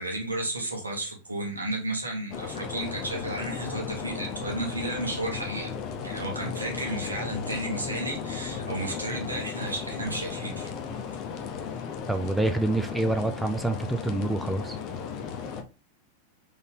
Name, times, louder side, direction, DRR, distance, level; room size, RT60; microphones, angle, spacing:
voice 1, 0.0-5.7 6.0-10.7, right 1 dB, 80° right, 1.4 m, -33 dB
sound 1, 2.3-15.6, left 6 dB, 40° left, 0.8 m, -35 dB
voice 2, 12.1-14.8, right 2 dB, 5° right, 0.5 m, -27 dB
4.0 x 3.5 x 3.6 m
figure-of-eight pair, 90°, 0 cm